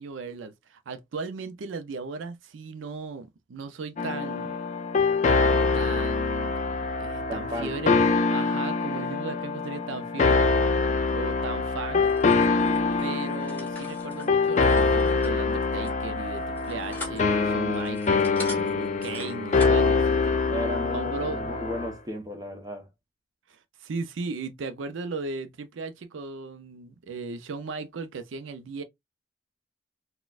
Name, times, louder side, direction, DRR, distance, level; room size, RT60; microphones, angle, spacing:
voice 1, 0.0-4.6 5.7-6.6 7.0-10.5 10.8-12.1 13.0-20.4 20.8-21.6 23.5-28.8, right 4 dB, 85° right, 0.4 m, -37 dB
sound 1, 4.0-21.9, left 4 dB, 35° left, 0.4 m, -25 dB
voice 2, 7.3-7.7 20.5-22.9, equal, 20° right, 0.8 m, -34 dB
sound 2, 12.0-19.9, left 2 dB, 10° left, 1.2 m, -44 dB
4.1 x 2.2 x 2.3 m
head